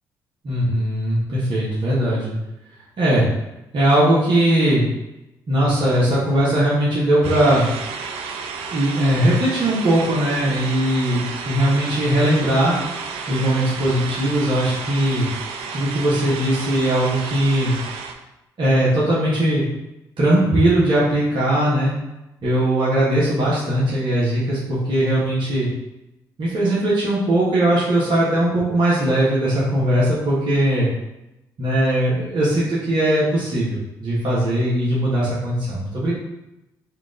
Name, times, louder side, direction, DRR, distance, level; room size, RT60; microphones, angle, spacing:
voice 1, 0.4-2.3 3.0-3.2 3.7-4.8 5.5-7.7 8.7-12.7 13.3-15.3 15.7-17.7 18.6-19.6 20.2-21.9 22.4-25.7 26.4-30.9 31.6-36.2, right 1 dB, 55° right, -8 dB, 1.5 m, -19 dB
sound 1, 7.2-18.1, right 5 dB, 75° right, 0.5 m, -32 dB
4.5 x 2.6 x 3.8 m, 0.94 s
hypercardioid pair, 50°, 10 cm